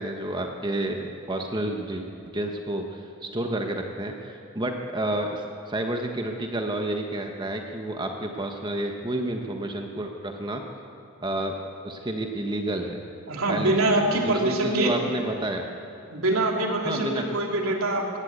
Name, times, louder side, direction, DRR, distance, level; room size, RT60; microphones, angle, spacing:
voice 1, 0.0-2.0 2.3-10.6 11.2-11.5 11.8-13.0 13.5-15.7 16.8-17.2, right 1 dB, 20° right, 3 dB, 1.2 m, -30 dB
voice 2, 13.3-14.9 16.1-18.2, right 2 dB, 80° right, 1 dB, 3.1 m, -24 dB
20.5 x 17.0 x 8.2 m, 2.7 s
head